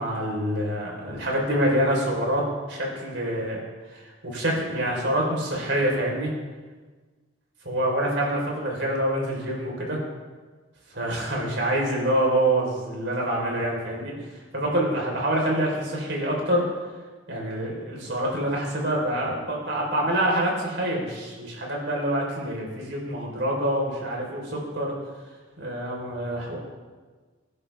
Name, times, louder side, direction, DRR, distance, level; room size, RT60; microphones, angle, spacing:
voice 1, 0.0-2.4 2.7-3.6 3.9-6.3 7.6-10.0 10.9-14.1 14.5-16.6 17.3-24.9 25.6-26.6, right 1 dB, 65° right, -1 dB, 4.2 m, -26 dB
22.5 x 11.0 x 3.5 m, 1.4 s
head